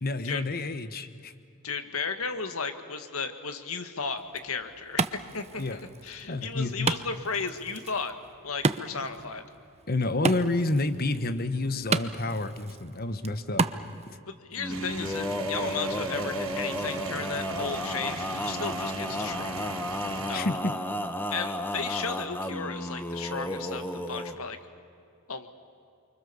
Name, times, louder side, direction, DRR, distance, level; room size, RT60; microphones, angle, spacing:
voice 1, 0.0-1.3 5.6-5.8 6.3-6.9 9.9-13.6 20.3-20.7, left 2 dB, 45° left, 11 dB, 1.2 m, -29 dB
voice 2, 1.6-5.1 5.3-8.1 8.4-9.5 14.3-19.5 20.3-20.5 21.3-24.6 25.3-25.5, left 5 dB, 90° left, 8 dB, 1.9 m, -34 dB
Wood, 4.2-14.2, right 4 dB, 30° right, 0.7 m, -34 dB
Male singing, 14.6-24.4, left 1 dB, 10° left, 1.1 m, -33 dB
sound 1, 14.7-20.4, right 4 dB, 70° right, 1.4 m, -39 dB
29.5 x 24.5 x 7.1 m, 2.5 s
head